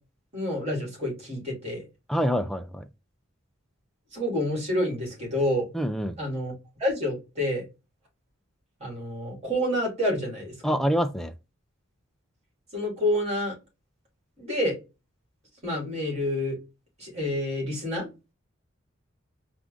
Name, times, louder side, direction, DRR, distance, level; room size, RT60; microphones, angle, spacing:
voice 1, 0.3-1.8 4.1-5.6 6.2-6.5 6.8-7.6 8.8-10.7 12.7-13.5 14.4-14.7 15.6-16.6 17.0-18.1, left 1 dB, 30° right, 2.7 m, -28 dB
voice 2, 2.1-2.8 5.7-6.2 10.6-11.3, equal, ahead, 0.4 m, -26 dB
4.6 x 2.5 x 3.7 m
head